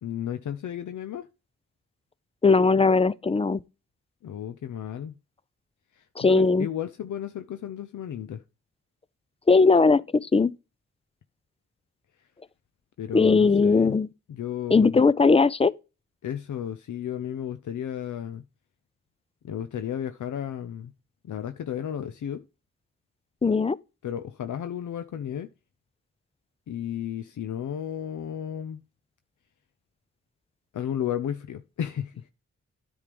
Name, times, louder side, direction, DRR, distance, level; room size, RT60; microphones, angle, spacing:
voice 1, 0.0-1.3 4.2-5.1 6.0-8.4 13.0-14.0 14.3-15.0 16.2-18.4 19.4-20.9 21.2-22.4 24.0-25.5 26.7-28.8 30.7-32.3, left 9 dB, 70° left, 0.6 m, -33 dB
voice 2, 2.4-3.6 6.2-6.7 9.5-10.5 13.1-14.1 14.7-15.7 23.4-23.8, left 4 dB, 20° left, 0.4 m, -19 dB
9.7 x 3.6 x 5.2 m
cardioid pair, 50°, 31 cm